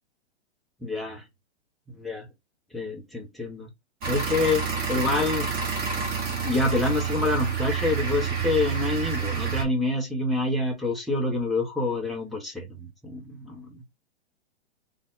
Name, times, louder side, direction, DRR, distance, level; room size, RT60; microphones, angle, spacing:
voice 1, 0.8-1.2 2.0-2.3 2.7-3.7 4.1-4.6 4.9-5.5 6.4-13.8, left 2 dB, ahead, 0.7 m, -27 dB
sound 1, 4.0-9.6, right 6 dB, 25° right, 1.3 m, -28 dB
3.6 x 2.3 x 3.6 m
hypercardioid pair, 130°, 35 cm